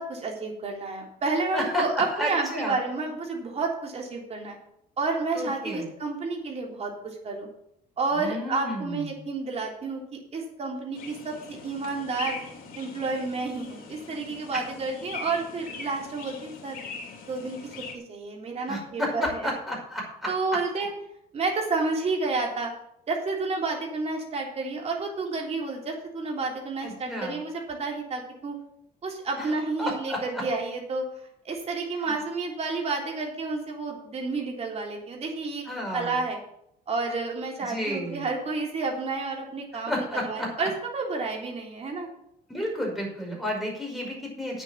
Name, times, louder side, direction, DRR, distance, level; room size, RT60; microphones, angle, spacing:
voice 1, 0.0-4.6 5.0-7.5 8.0-10.0 10.3-11.3 11.6-12.4 12.8-16.8 17.3-19.5 20.3-20.9 21.3-22.7 23.1-28.6 29.0-31.1 31.5-36.4 36.9-42.1, right 3 dB, 40° right, 0 dB, 3.5 m, -30 dB
voice 2, 2.1-2.8 5.3-5.9 8.1-9.1 14.5-14.6 18.7-20.3 26.8-27.4 29.4-29.5 29.8-30.4 32.0-32.2 35.6-36.2 37.6-38.3 39.9-40.7 42.5-44.6, equal, ahead, -2 dB, 5.4 m, -32 dB
sound 1, 11.0-18.0, left 5 dB, 55° left, 2.9 m, -41 dB
8.9 x 7.6 x 7.4 m, 0.74 s
cardioid pair, 110°, 17 cm